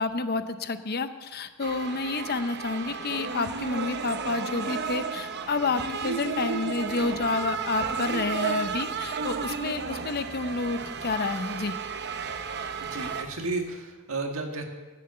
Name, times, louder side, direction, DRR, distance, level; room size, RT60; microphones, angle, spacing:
voice 1, 0.0-11.7, left 3 dB, 45° left, 11 dB, 0.7 m, -29 dB
sound 1, 1.6-13.2, right 5 dB, 50° right, 0.8 m, -33 dB
sound 2, 6.9-13.7, equal, 5° left, 3.8 m, -51 dB
voice 2, 12.8-14.6, right 3 dB, 70° right, 3 dB, 1.8 m, -33 dB
16.5 x 7.7 x 6.8 m, 1.3 s
head